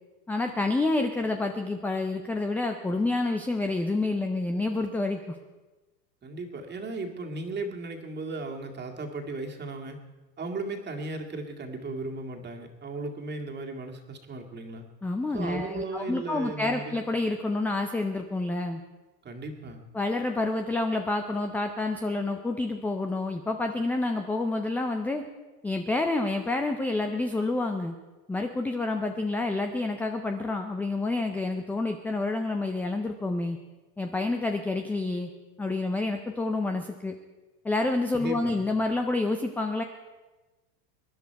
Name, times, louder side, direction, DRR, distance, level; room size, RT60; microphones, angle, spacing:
voice 1, 0.3-5.3 15.0-18.8 19.9-25.2 25.6-27.9 28.3-33.6 34.0-35.3 35.6-37.1 37.6-39.8, left 2 dB, 5° left, 5 dB, 0.4 m, -28 dB
voice 2, 6.2-10.0 10.4-14.9 15.3-17.0 19.2-19.8 38.2-38.6, right 2 dB, 20° right, 2 dB, 2.0 m, -36 dB
23.5 x 10.5 x 4.6 m, 1.2 s
supercardioid pair, 120°, 49 cm